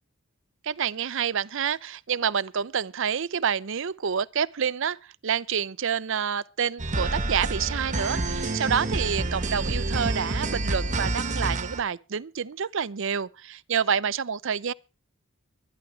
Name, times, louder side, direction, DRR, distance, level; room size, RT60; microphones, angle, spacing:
voice 1, 0.6-5.0 5.2-14.7, right 7 dB, 65° right, 0.6 m, -28 dB
sound 1, 6.8-11.8, right 2 dB, 35° right, 1.2 m, -28 dB
23.5 x 10.0 x 3.2 m
head